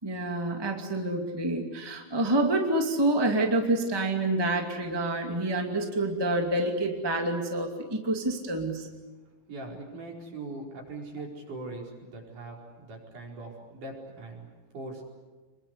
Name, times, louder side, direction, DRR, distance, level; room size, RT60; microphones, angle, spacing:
voice 1, 0.0-8.9, right 2 dB, 15° right, 2 dB, 0.9 m, -27 dB
voice 2, 9.5-15.0, right 2 dB, 45° right, 0 dB, 5.9 m, -41 dB
27.5 x 22.5 x 8.2 m, 1.3 s
omnidirectional pair, 5.3 m